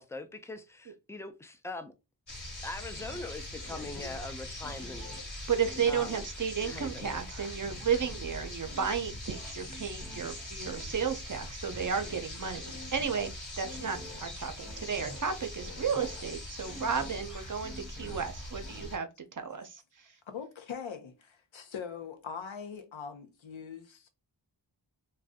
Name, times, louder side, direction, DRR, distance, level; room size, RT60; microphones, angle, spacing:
voice 1, 0.0-1.9 2.6-5.2 5.9-6.3 6.6-7.1, left 2 dB, 5° left, 0.4 m, -42 dB
sound 1, 2.3-19.0, left 1 dB, 40° left, 1.2 m, -42 dB
sound 2, 2.9-18.9, left 1 dB, 75° left, 1.1 m, -49 dB
voice 2, 5.5-12.6 12.9-13.3 13.6-19.1 19.4-19.8, right 6 dB, 45° right, 0.5 m, -33 dB
voice 3, 20.3-24.1, left 7 dB, 90° left, 0.6 m, -42 dB
2.6 x 2.2 x 3.4 m
wide cardioid pair, 60°, 45 cm